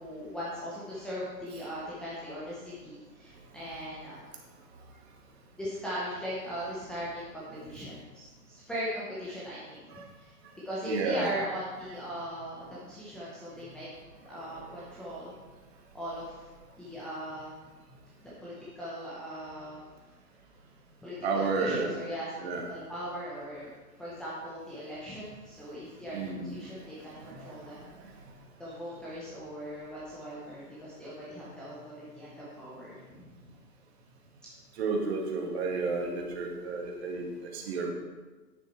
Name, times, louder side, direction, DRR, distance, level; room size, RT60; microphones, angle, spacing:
voice 1, 0.0-4.2 4.9-5.0 5.5-10.3 10.6-13.9 14.2-15.3 15.9-16.4 16.8-17.5 18.2-19.8 21.0-23.7 24.0-27.8 28.6-33.5, equal, ahead, -10 dB, 0.8 m, -39 dB
voice 2, 10.8-11.3 14.5-14.7 21.2-21.9 22.4-22.6 26.1-26.5 27.1-28.0 34.8-37.9, right 4 dB, 40° right, 0 dB, 2.1 m, -32 dB
10.0 x 8.4 x 4.5 m, 1.3 s
hypercardioid pair, 135°, 48 cm